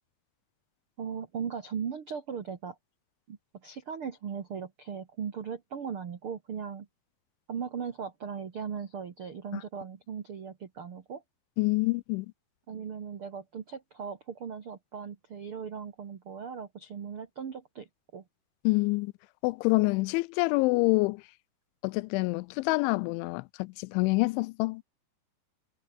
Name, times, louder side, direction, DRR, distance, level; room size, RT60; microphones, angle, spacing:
voice 1, 1.0-2.8 3.3-6.9 7.5-11.2 12.7-17.9 18.1-18.2, right 7 dB, 80° right, 1.2 m, -38 dB
voice 2, 11.6-12.3 18.6-19.1 19.4-21.2 21.8-24.8, left 24 dB, 85° left, 2.9 m, -26 dB
omnidirectional pair, 5.4 m